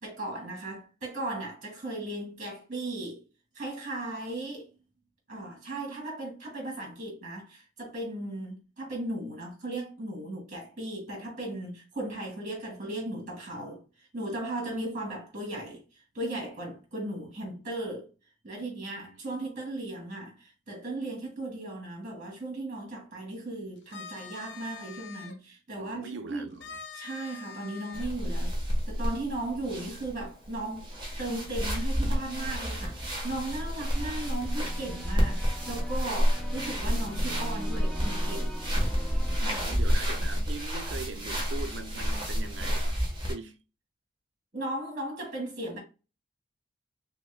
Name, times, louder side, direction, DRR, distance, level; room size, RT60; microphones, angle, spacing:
voice 1, 0.0-3.2 3.5-4.7 5.3-13.8 14.1-18.1 18.4-26.5 26.9-28.6 28.9-38.6 39.1-39.8 44.5-45.8, right 1 dB, 45° right, 2.1 m, -37 dB
sound 1, 23.8-25.4 26.6-28.1, left 6 dB, 70° left, 0.7 m, -44 dB
voice 2, 25.7-26.6 39.6-43.6, right 4 dB, 75° right, 0.6 m, -41 dB
sound 2, 27.9-43.3, equal, 25° right, 1.2 m, -30 dB
sound 3, 30.9-39.6, equal, 5° left, 0.6 m, -45 dB
6.0 x 2.2 x 2.2 m
head